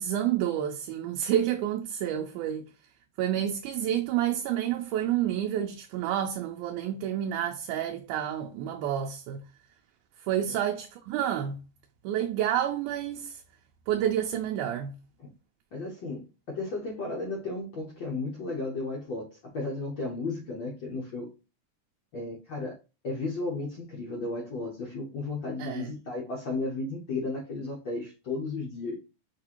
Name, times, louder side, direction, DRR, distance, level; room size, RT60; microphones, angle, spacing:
voice 1, 0.0-2.7 3.2-9.4 10.2-11.6 12.0-13.4 13.9-15.0 25.6-25.9, right 10 dB, 90° right, 2.1 m, -29 dB
voice 2, 15.7-21.3 22.1-22.7 23.0-29.0, left 3 dB, 85° left, 1.0 m, -34 dB
6.3 x 2.5 x 2.8 m
omnidirectional pair, 3.5 m